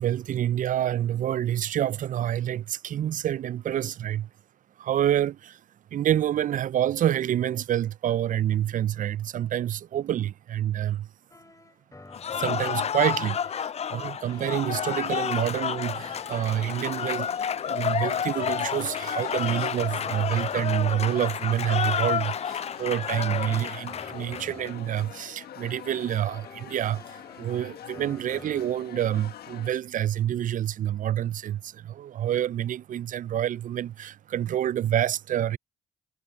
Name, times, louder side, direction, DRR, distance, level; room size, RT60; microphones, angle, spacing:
voice 1, 0.0-4.3 4.8-5.6 5.9-11.1 12.4-17.3 17.6-35.6, right 11 dB, 55° right, 0.4 m, -27 dB
sound 1, 11.3-12.9 14.2-16.9 18.2-20.9 22.2-24.9 26.2-28.9, left 2 dB, 20° left, 3.5 m, -50 dB
Cheering / Applause, 12.1-24.7, left 8 dB, 40° left, 0.4 m, -30 dB
sound 2, 14.3-29.7, left 10 dB, 75° left, 1.5 m, -45 dB
supercardioid pair, 55°, 16 cm